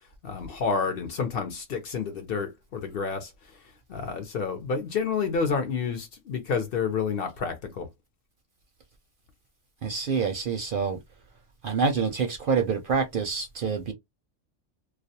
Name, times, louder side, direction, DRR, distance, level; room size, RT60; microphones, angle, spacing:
voice 1, 0.2-3.3 3.9-7.9, left 5 dB, 60° left, 0.7 m, -29 dB
voice 2, 9.8-11.0 11.6-13.9, right 5 dB, 60° right, 0.6 m, -26 dB
2.3 x 2.1 x 2.7 m
omnidirectional pair, 1.2 m